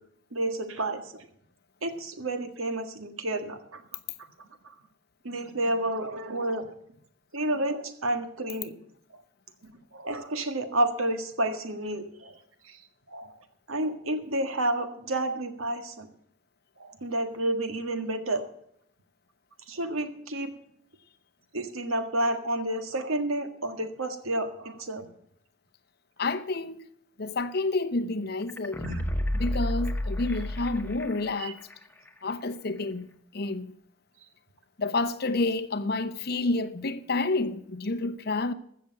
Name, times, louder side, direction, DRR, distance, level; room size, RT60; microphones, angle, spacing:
voice 1, 0.3-1.2 1.8-3.8 4.4-4.7 5.2-6.7 7.3-8.7 9.6-12.4 12.6-12.8 13.1-13.4 13.7-16.1 16.8-18.4 19.7-20.5 21.5-25.1 28.8-29.0 31.4-31.5, right 1 dB, 85° right, 1.7 m, -30 dB
voice 2, 26.2-26.9 27.2-28.8 29.3-31.6 32.2-33.7 34.8-38.5, left 3 dB, 50° left, 0.8 m, -29 dB
sound 1, 28.5-31.4 31.7-31.8, left 1 dB, 10° left, 0.9 m, -30 dB
15.0 x 6.7 x 7.9 m
head